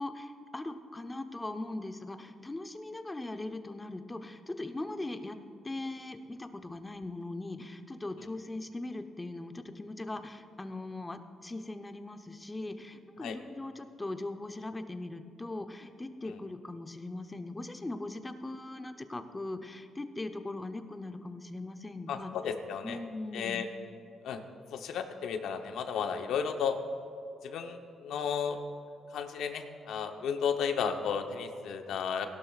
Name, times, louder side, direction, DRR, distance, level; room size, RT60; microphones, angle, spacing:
voice 1, 0.0-5.4 5.6-22.3 22.8-23.6, left 2 dB, 15° left, 8 dB, 0.7 m, -40 dB
voice 2, 22.1-23.0 23.3-23.7 24.2-24.4 24.7-26.8 27.4-28.6 29.1-32.3, left 7 dB, 75° left, 6 dB, 0.9 m, -33 dB
17.0 x 12.0 x 2.4 m, 2.5 s
cardioid pair, 90°, 0 cm